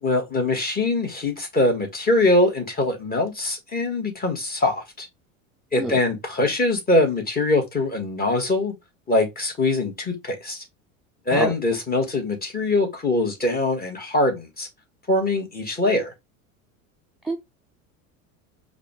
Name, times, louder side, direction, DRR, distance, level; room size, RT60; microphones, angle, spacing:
voice 1, 0.0-5.1 5.7-8.7 9.1-10.6 11.3-14.7 15.1-16.1, left 2 dB, 20° left, 1.6 m, -23 dB
voice 2, 5.8-6.0 11.3-11.6 17.2-17.4, right 1 dB, ahead, 0.3 m, -26 dB
4.7 x 2.4 x 3.2 m
hypercardioid pair, 85°, 41 cm